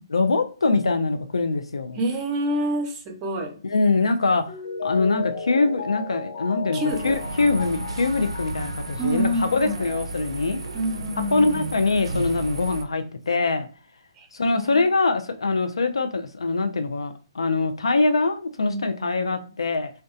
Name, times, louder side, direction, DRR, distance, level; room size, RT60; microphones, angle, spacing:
voice 1, 0.1-2.0 3.6-4.6 4.8-10.6 11.3-13.7 14.3-19.9, left 3 dB, 85° left, 0.3 m, -23 dB
voice 2, 1.9-3.6 6.7-7.2 9.0-9.8 10.7-11.6 14.2-14.8 18.6-19.4, equal, 30° right, 0.6 m, -28 dB
Mallet percussion, 4.5-10.0 10.3-10.4, left 5 dB, 35° left, 0.8 m, -34 dB
sound 1, 6.9-12.8, right 2 dB, 80° right, 0.4 m, -33 dB
2.6 x 2.1 x 2.3 m
hypercardioid pair, 140°, 3 cm